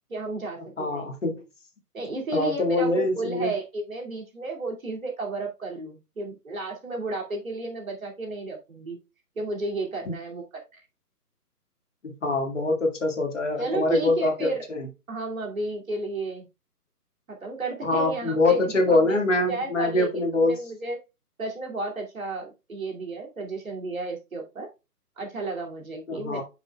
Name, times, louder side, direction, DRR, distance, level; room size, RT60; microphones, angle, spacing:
voice 1, 0.1-1.1 1.9-9.0 9.4-10.8 13.6-14.6 15.1-16.5 17.3-19.2 19.5-21.0 21.4-24.7 25.2-26.4, right 3 dB, 55° right, 0 dB, 2.5 m, -33 dB
voice 2, 0.8-1.4 2.3-3.5 10.1-10.2 12.0-14.9 17.8-20.6 26.1-26.4, left 2 dB, 50° left, 2 dB, 1.9 m, -24 dB
8.6 x 6.1 x 2.2 m, 0.26 s
hypercardioid pair, 180°, 48 cm